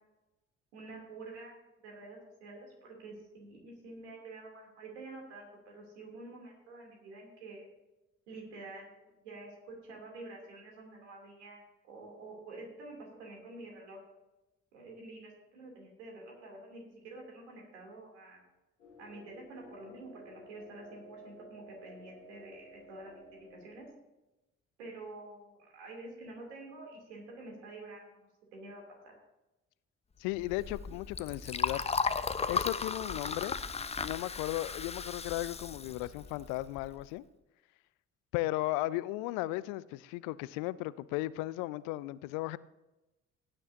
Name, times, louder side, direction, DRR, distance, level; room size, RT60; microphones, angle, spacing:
voice 1, 0.7-7.7 8.3-14.0 14.7-18.4 19.0-23.2 23.5-23.9 24.8-29.1, right 2 dB, 75° right, 3.1 m, -48 dB
sound 1, 18.8-23.8, equal, 90° left, 1.4 m, -54 dB
voice 2, 30.2-31.8 32.5-33.6 34.0-37.2 38.3-42.6, left 17 dB, 65° left, 0.5 m, -35 dB
Liquid, 30.3-37.0, left 5 dB, 20° left, 0.7 m, -36 dB
17.5 x 9.8 x 2.8 m
figure-of-eight pair, 45°, 35 cm